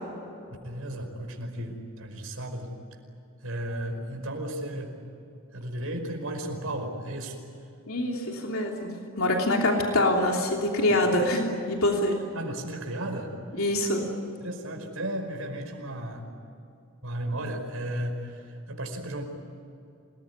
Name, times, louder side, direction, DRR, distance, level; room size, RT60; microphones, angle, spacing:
voice 1, 0.6-2.8 3.4-5.0 5.5-7.4 10.9-11.0 12.3-13.3 14.4-16.3 17.0-19.2, right 1 dB, 90° right, 3 dB, 5.2 m, -34 dB
voice 2, 7.9-12.2 13.5-14.1, left 1 dB, 80° left, 0 dB, 3.0 m, -25 dB
27.5 x 20.0 x 9.8 m, 2.7 s
head